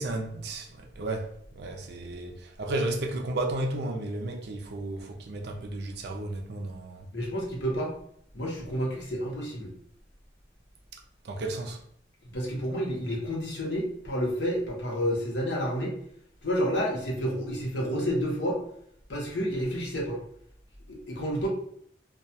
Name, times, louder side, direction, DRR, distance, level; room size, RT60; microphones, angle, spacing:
voice 1, 0.0-7.0 11.2-11.8, right 2 dB, 65° right, 0.4 m, -33 dB
voice 2, 7.1-8.0 8.3-9.7 12.3-16.0 16.4-18.6 19.1-20.2 20.9-21.5, equal, 75° left, 0.8 m, -30 dB
2.3 x 2.2 x 2.7 m
head